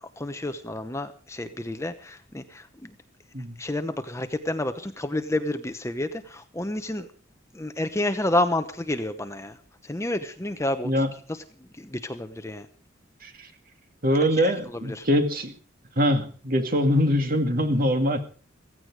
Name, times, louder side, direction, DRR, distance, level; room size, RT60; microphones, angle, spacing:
voice 1, 0.0-2.9 3.6-7.1 7.5-9.6 9.8-11.0 11.8-12.7 14.4-15.1, left 1 dB, 15° left, 9 dB, 0.9 m, -30 dB
voice 2, 14.0-15.5 16.0-18.2, equal, 45° right, 6 dB, 2.2 m, -23 dB
16.0 x 15.5 x 4.8 m, 0.39 s
head